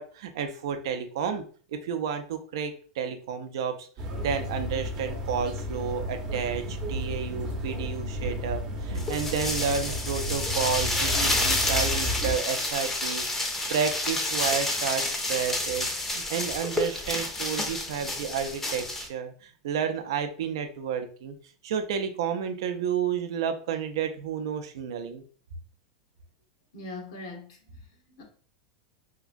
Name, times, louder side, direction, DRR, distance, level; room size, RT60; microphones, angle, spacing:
voice 1, 0.0-1.4 1.7-3.9 4.2-13.2 13.7-21.3 21.6-25.2, right 7 dB, 75° right, 8 dB, 0.4 m, -31 dB
sound 1, 4.0-12.3, equal, 30° right, 0.7 m, -33 dB
sound 2, 9.0-19.1, left 2 dB, 15° left, 0.6 m, -29 dB
voice 2, 26.7-28.2, left 2 dB, 75° left, 1 dB, 1.0 m, -42 dB
2.9 x 2.4 x 2.5 m, 0.42 s
supercardioid pair, 130°, 2 cm